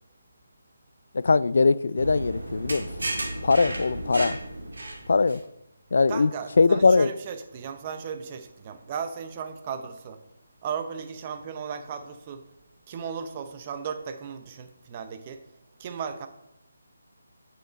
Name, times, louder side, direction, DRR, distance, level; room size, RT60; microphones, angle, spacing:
voice 1, 1.2-2.9 3.4-4.4 5.1-5.4 5.9-6.3 6.6-7.1, left 4 dB, 65° left, 0.3 m, -21 dB
sound 1, 2.0-5.4, right 1 dB, 80° right, 2.2 m, -33 dB
voice 2, 6.1-10.2 10.6-12.4 12.9-15.4 15.8-16.3, right 7 dB, 25° right, 0.7 m, -36 dB
8.3 x 6.5 x 4.0 m
figure-of-eight pair, 165°, 0 cm